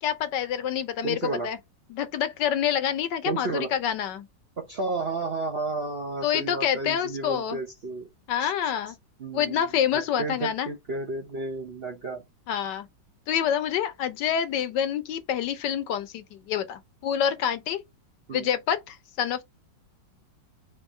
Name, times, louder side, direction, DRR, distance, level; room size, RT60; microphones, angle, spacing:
voice 1, 0.0-1.6 1.9-4.3 6.2-7.6 8.3-8.9 9.3-10.7 12.5-12.9 13.3-17.8 18.3-19.4, left 9 dB, 75° left, 1.3 m, -27 dB
voice 2, 1.0-1.5 3.2-3.7 4.6-8.1 8.4-8.5 9.2-9.6 9.9-12.2 18.3-18.5, right 3 dB, 50° right, 0.7 m, -32 dB
4.5 x 2.6 x 4.2 m
omnidirectional pair, 2.0 m